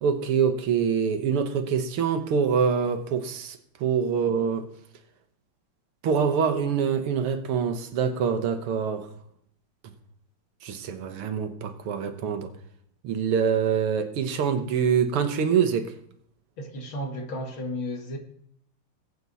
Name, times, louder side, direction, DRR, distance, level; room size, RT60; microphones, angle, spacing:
voice 1, 0.0-4.7 6.0-9.1 10.6-12.5 13.0-15.9, right 6 dB, 85° right, 2.1 m, -25 dB
voice 2, 16.6-18.2, left 1 dB, 65° left, 2.6 m, -33 dB
20.5 x 8.3 x 4.1 m
omnidirectional pair, 2.4 m